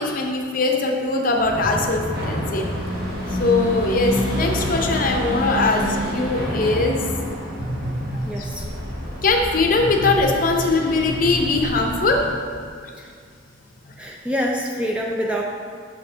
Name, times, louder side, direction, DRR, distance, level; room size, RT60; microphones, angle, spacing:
voice 1, 0.0-2.7 3.3-7.1 8.2-8.6 9.0-12.2 13.9-14.0, left 3 dB, 45° left, 2 dB, 0.6 m, -21 dB
sound 1, 1.4-12.3, equal, 50° right, 1.4 m, -27 dB
voice 2, 8.3-8.7 13.0-13.1 14.0-15.4, equal, 5° right, -1 dB, 0.3 m, -26 dB
6.9 x 5.4 x 3.3 m, 2.2 s
head